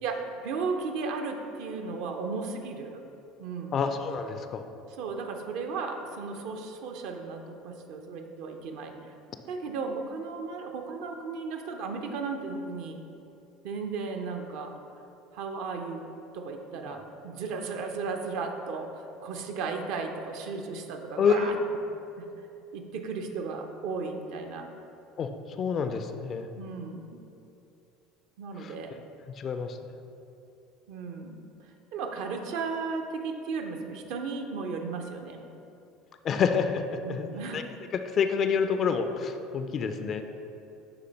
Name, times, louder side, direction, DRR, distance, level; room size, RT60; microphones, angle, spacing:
voice 1, 0.0-3.0 3.4-3.8 5.0-9.1 9.5-13.0 13.6-14.7 15.3-16.0 16.3-21.6 22.2-22.3 22.7-24.7 26.6-27.1 28.4-29.0 30.9-31.4 31.9-35.4 37.0-37.6, right 4 dB, 55° right, 4 dB, 0.6 m, -35 dB
voice 2, 3.7-4.7 16.9-17.0 21.2-21.6 25.2-25.3 25.6-26.5 28.6-28.7 29.4-29.8 36.2-37.3 37.5-37.6 38.1-40.2, left 6 dB, 40° left, 8 dB, 0.4 m, -27 dB
11.0 x 3.8 x 3.2 m, 2.8 s
figure-of-eight pair, 65°, 0 cm